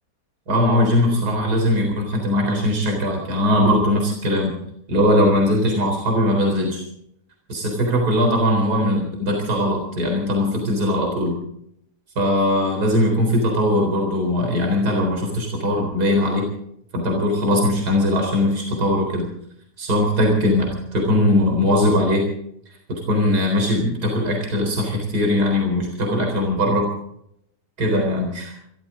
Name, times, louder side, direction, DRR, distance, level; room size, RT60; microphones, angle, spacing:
voice 1, 0.5-4.6 4.9-6.8 7.5-11.4 12.2-16.5 16.9-19.3 19.8-22.3 22.9-26.9 27.8-28.5, left 1 dB, 65° right, 1 dB, 4.5 m, -20 dB
26.5 x 13.5 x 3.8 m, 0.73 s
omnidirectional pair, 1.8 m